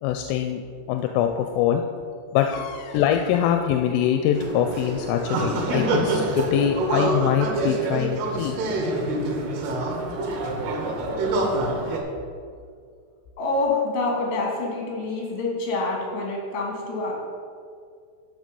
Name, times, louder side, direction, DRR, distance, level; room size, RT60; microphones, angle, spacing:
voice 1, 0.0-0.6 0.9-1.8 2.3-8.6, left 9 dB, 85° left, 5 dB, 3.1 m, -23 dB
sound 1, 4.3-12.0, right 2 dB, 70° right, 2.9 m, -26 dB
voice 2, 13.4-17.1, left 3 dB, 65° left, -2 dB, 4.1 m, -26 dB
12.5 x 6.4 x 5.2 m, 2.3 s
omnidirectional pair, 5.7 m